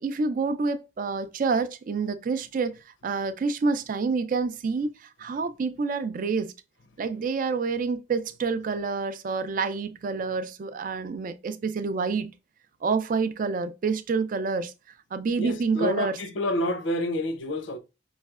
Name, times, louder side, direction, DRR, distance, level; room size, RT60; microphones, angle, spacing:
voice 1, 0.0-6.5 7.0-12.3 12.8-14.7 15.1-16.2, right 4 dB, 45° right, 0.4 m, -28 dB
voice 2, 15.4-17.8, left 1 dB, 90° left, 0.7 m, -28 dB
5.4 x 3.1 x 2.4 m
head